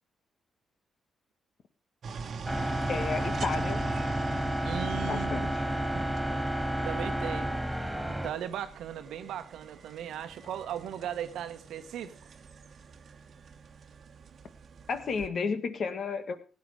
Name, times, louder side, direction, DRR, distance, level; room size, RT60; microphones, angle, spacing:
sound 1, 2.0-15.3, right 5 dB, 60° right, 1.2 m, -44 dB
sound 2, 2.4-8.3, equal, 5° right, 2.9 m, -31 dB
voice 1, 2.9-3.9 5.0-5.6 14.9-16.4, left 5 dB, 60° left, 1.8 m, -32 dB
voice 2, 4.6-5.5 5.9-6.4 6.8-7.5 8.2-12.2, right 10 dB, 80° right, 1.1 m, -37 dB
16.5 x 9.5 x 4.9 m
supercardioid pair, 55°, 0 cm